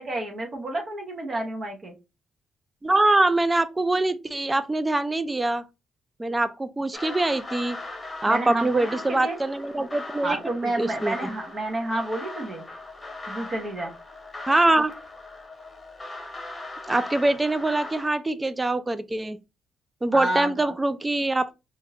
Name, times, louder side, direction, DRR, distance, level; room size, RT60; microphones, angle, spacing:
voice 1, 0.0-1.9 8.3-9.4 10.2-12.6 13.3-13.9 20.1-20.7, right 2 dB, 45° right, 0.9 m, -30 dB
voice 2, 2.8-5.6 6.2-7.8 8.2-10.4 10.6-11.3 14.5-14.9 16.9-19.4 20.0-21.5, right 2 dB, 15° right, 0.4 m, -24 dB
sound 1, 6.9-18.1, left 2 dB, 20° left, 0.9 m, -39 dB
3.6 x 2.5 x 2.7 m
cardioid pair, 90°, 0 cm